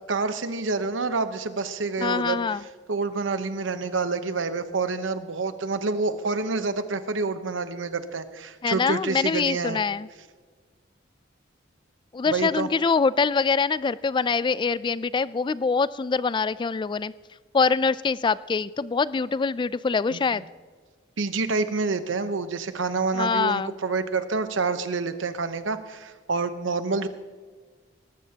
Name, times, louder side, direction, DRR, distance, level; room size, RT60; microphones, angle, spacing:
voice 1, 0.1-2.4 2.9-9.8 12.3-12.7 20.1-20.2 21.2-27.1, right 4 dB, 80° right, 10 dB, 0.9 m, -27 dB
voice 2, 2.0-2.6 8.6-10.1 12.1-17.1 17.5-20.4 23.1-23.7, left 5 dB, 25° left, 18 dB, 0.3 m, -24 dB
19.0 x 14.0 x 2.9 m, 1.5 s
head